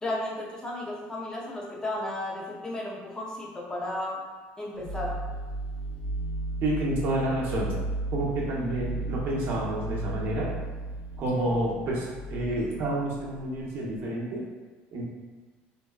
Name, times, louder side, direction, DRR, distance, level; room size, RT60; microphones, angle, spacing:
voice 1, 0.0-4.3 4.6-5.2, left 1 dB, 15° left, -3 dB, 0.5 m, -34 dB
sound 1, 4.7-14.1, right 2 dB, 80° left, 1.2 m, -35 dB
voice 2, 6.6-7.7 8.1-10.5 11.2-14.4 14.9-15.0, right 1 dB, 55° right, -3 dB, 0.7 m, -29 dB
2.6 x 2.2 x 2.3 m, 1.3 s
cardioid pair, 120°, 4 cm